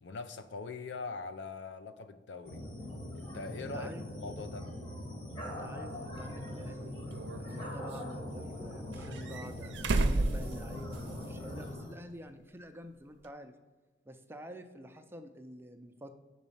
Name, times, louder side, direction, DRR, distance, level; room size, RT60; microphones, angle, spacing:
voice 1, 0.0-2.6 3.1-3.9 4.2-4.7, left 4 dB, 80° left, 10 dB, 0.6 m, -42 dB
sound 1, 2.4-11.9, left 1 dB, 30° left, 1.2 m, -42 dB
voice 2, 3.7-4.0 5.5-7.0 7.3-9.8 10.0-13.5 14.1-16.1, equal, 15° right, 7 dB, 0.4 m, -48 dB
sound 2, 6.1-6.2 7.1-8.0 8.9-11.3 11.6-11.7 13.2-13.3, right 2 dB, 80° right, 0.5 m, -33 dB
6.0 x 4.1 x 5.5 m, 1.3 s
head